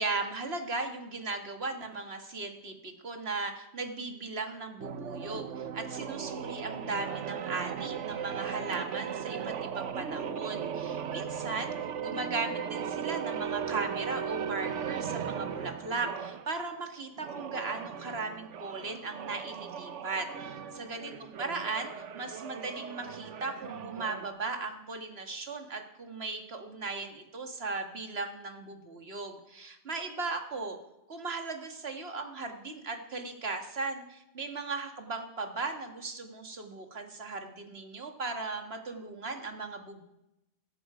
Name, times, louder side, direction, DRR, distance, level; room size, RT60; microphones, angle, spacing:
voice 1, 0.0-30.8 31.1-40.0, right 3 dB, 60° right, 5 dB, 2.1 m, -37 dB
sound 1, 4.8-16.5 17.1-24.3, right 7 dB, 85° right, 1.2 m, -37 dB
16.5 x 15.5 x 5.0 m, 0.89 s
omnidirectional pair, 1.2 m